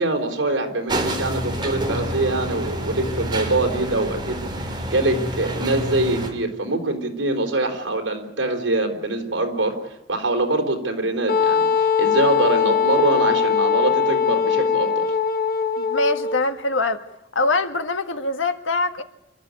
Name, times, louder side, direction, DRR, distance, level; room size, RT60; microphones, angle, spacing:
voice 1, 0.0-15.1, right 2 dB, 75° right, 4 dB, 4.2 m, -24 dB
sound 1, 0.9-6.3, right 1 dB, 25° right, 3.3 m, -28 dB
Wind instrument woodwind instrument, 11.3-16.4, left 6 dB, 50° left, 1.2 m, -21 dB
voice 2, 15.8-17.0 17.3-19.0, left 3 dB, 85° left, 8 dB, 1.6 m, -23 dB
27.5 x 13.0 x 9.8 m, 0.88 s
head